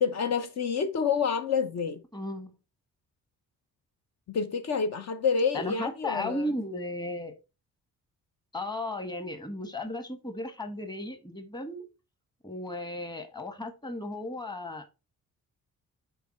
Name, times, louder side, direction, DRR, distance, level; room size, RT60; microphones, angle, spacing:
voice 1, 0.0-2.0 4.3-6.5, left 6 dB, 60° left, 0.8 m, -28 dB
voice 2, 2.1-2.5 5.5-7.3 8.5-11.8 12.4-14.8, left 1 dB, 15° left, 1.2 m, -35 dB
6.9 x 4.5 x 4.3 m
cardioid pair, 130°, 31 cm